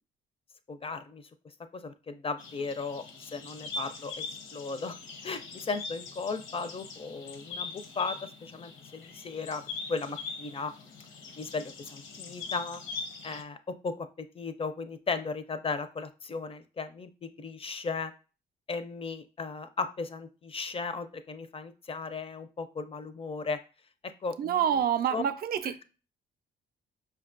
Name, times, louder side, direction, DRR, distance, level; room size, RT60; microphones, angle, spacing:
voice 1, 0.7-1.2 1.7-3.0 3.3-4.2 4.5-4.9 5.2-8.2 8.4-9.6 9.9-10.7 11.4-12.8 13.2-18.1 18.7-23.6 24.2-24.8 25.1-25.2, left 4 dB, 30° left, 10 dB, 0.4 m, -36 dB
sound 1, 2.4-13.4, left 4 dB, 75° left, 0.7 m, -42 dB
voice 2, 24.4-25.8, right 9 dB, 50° right, 11 dB, 0.4 m, -27 dB
5.1 x 2.2 x 2.5 m, 0.34 s
cardioid pair, 90°, 20 cm